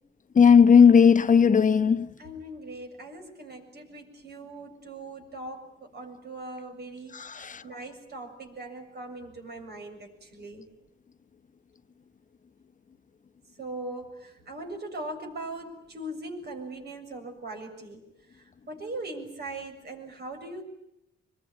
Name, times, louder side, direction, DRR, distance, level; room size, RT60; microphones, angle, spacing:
voice 1, 0.3-2.1 7.1-7.6, left 6 dB, 40° left, 1.0 m, -17 dB
voice 2, 2.2-10.7 13.6-18.0 18.7-20.6, right 2 dB, 60° right, 7.2 m, -40 dB
25.5 x 22.5 x 10.0 m
cardioid pair, 90°, 19 cm